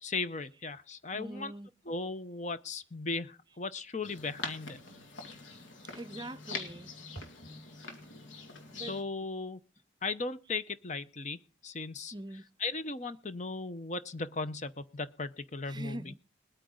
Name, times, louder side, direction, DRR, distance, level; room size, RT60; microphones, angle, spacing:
voice 1, 0.0-1.5 1.9-4.8 8.9-9.6 10.0-12.1 12.6-16.1, left 3 dB, 40° left, 0.7 m, -37 dB
voice 2, 1.1-1.8 5.9-6.9 8.7-9.0 12.1-12.4 15.7-16.2, right 1 dB, 20° right, 0.5 m, -43 dB
sound 1, 4.0-9.0, left 4 dB, 75° left, 2.3 m, -44 dB
21.0 x 9.1 x 3.8 m
head